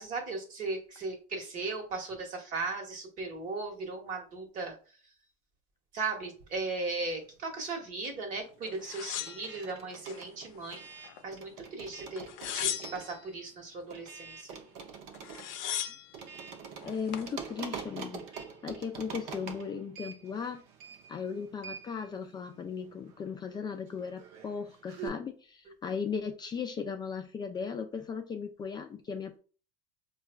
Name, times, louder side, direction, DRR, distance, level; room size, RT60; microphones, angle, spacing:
voice 1, 0.0-4.8 5.9-12.2 12.5-14.6, right 3 dB, 45° right, 3 dB, 1.2 m, -37 dB
sound 1, 6.3-7.5 7.8-25.1, right 7 dB, 65° right, 0.6 m, -46 dB
sound 2, 8.8-10.2 10.6-11.4 12.2-13.3 14.8-14.9 15.1-16.1 16.8-17.3, left 10 dB, 75° left, 0.5 m, -37 dB
voice 2, 16.8-18.3 18.6-20.6 21.1-29.4, left 6 dB, 25° left, 5 dB, 0.4 m, -37 dB
4.5 x 2.3 x 2.2 m, 0.38 s
supercardioid pair, 120°, 18 cm